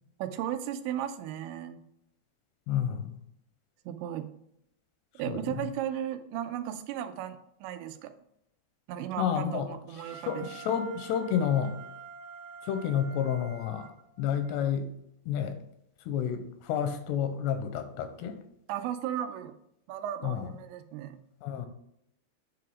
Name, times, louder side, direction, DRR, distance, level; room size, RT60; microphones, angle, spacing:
voice 1, 0.2-1.8 3.9-4.3 5.2-8.1 8.9-10.5 18.7-19.5 19.9-21.2, right 10 dB, 90° right, 9 dB, 3.0 m, -35 dB
voice 2, 2.7-3.2 5.2-5.4 9.2-9.7 10.1-11.7 12.6-13.9 14.2-14.9 15.3-15.6 16.1-18.4 20.2-20.5 21.4-21.7, left 8 dB, 85° left, 8 dB, 2.6 m, -30 dB
Wind instrument woodwind instrument, 9.9-14.7, right 5 dB, 60° right, 1.7 m, -47 dB
10.0 x 4.9 x 3.6 m, 0.78 s
omnidirectional pair, 5.1 m